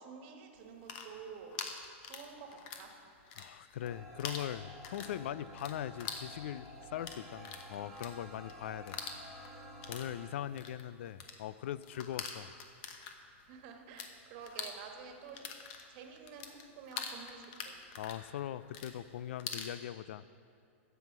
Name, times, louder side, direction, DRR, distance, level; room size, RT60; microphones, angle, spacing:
voice 1, 0.0-1.7 2.1-3.0 13.5-15.5 15.9-17.8, right 6 dB, 50° right, 4 dB, 1.4 m, -50 dB
sound 1, 0.7-2.9 3.2-3.9 4.2-14.1 14.4-19.7, left 6 dB, 50° left, 1.1 m, -45 dB
voice 2, 3.3-9.0 9.3-12.5 18.0-20.2, left 11 dB, 70° left, 17 dB, 0.4 m, -41 dB
sound 2, 3.8-10.3, equal, 5° left, 1.7 m, -51 dB
15.5 x 5.7 x 6.0 m, 2.5 s
hypercardioid pair, 125°, 7 cm